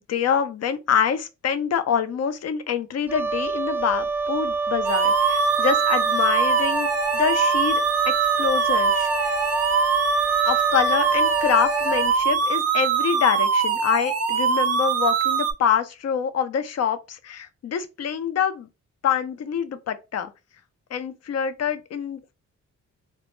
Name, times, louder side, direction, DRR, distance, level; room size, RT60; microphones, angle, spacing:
voice 1, 0.0-6.9 7.1-7.8 8.4-9.4 10.4-18.7 19.0-20.3 20.9-22.3, left 7 dB, 60° left, 0.5 m, -25 dB
Wind instrument woodwind instrument, 3.1-12.2, right 3 dB, 5° right, 0.3 m, -27 dB
sound 1, 4.9-15.5, right 6 dB, 55° right, 0.5 m, -22 dB
2.1 x 2.0 x 3.0 m
cardioid pair, 65°, 29 cm